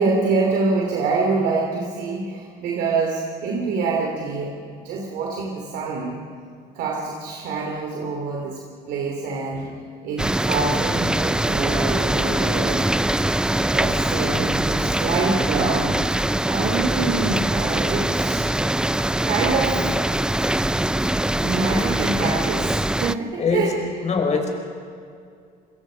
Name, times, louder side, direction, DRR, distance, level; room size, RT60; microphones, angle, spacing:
voice 1, 0.0-6.2 6.7-8.6 8.9-9.7 10.0-12.8 13.6-16.0 16.5-18.5 19.2-19.9 21.4-23.7, right 4 dB, 80° right, 0 dB, 3.0 m, -25 dB
sound 1, 10.2-23.2, right 1 dB, 5° right, 0.4 m, -22 dB
voice 2, 23.4-23.7 24.0-24.5, left 5 dB, 40° left, 3 dB, 4.6 m, -23 dB
26.0 x 22.0 x 5.2 m, 2.3 s
cardioid pair, 110°, 17 cm